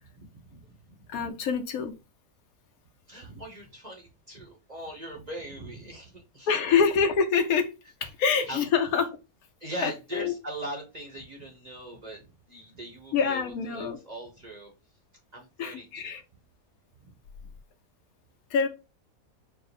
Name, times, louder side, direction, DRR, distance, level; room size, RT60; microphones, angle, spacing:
voice 1, 0.2-1.3 3.1-6.5 8.5-8.7 9.6-14.7 15.3-16.2 17.0-17.2, right 1 dB, 35° right, 0 dB, 0.8 m, -41 dB
voice 2, 1.1-1.9 6.5-7.7 8.0-9.2 9.8-10.3 13.1-14.0 15.6-16.2 18.5-18.7, left 6 dB, 70° left, 6 dB, 1.1 m, -26 dB
4.5 x 2.0 x 4.0 m, 0.28 s
omnidirectional pair, 1.6 m